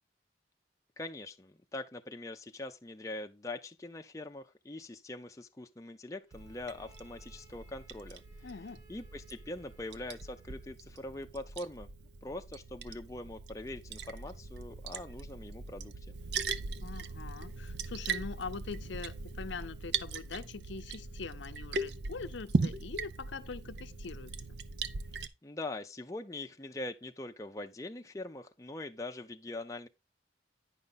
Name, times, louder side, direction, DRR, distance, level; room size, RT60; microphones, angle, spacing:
voice 1, 1.0-8.5 8.9-11.9 12.2-15.9 25.4-29.9, left 2 dB, 15° left, 0.5 m, -43 dB
Bowed string instrument, 6.3-10.9, right 2 dB, 20° right, 3.4 m, -63 dB
Liquid, 6.3-25.3, right 4 dB, 60° right, 0.6 m, -39 dB
voice 2, 8.4-8.8 16.8-24.6, left 4 dB, 75° left, 0.6 m, -43 dB
9.8 x 5.4 x 3.9 m
head